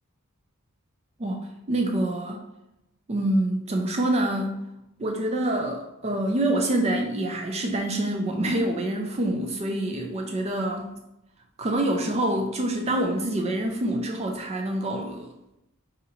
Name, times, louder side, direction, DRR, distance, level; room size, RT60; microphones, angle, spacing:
voice 1, 1.2-2.4 3.1-4.6 5.0-10.9 11.6-15.3, right 1 dB, 30° right, 2 dB, 0.4 m, -26 dB
3.8 x 2.7 x 4.1 m, 0.88 s
head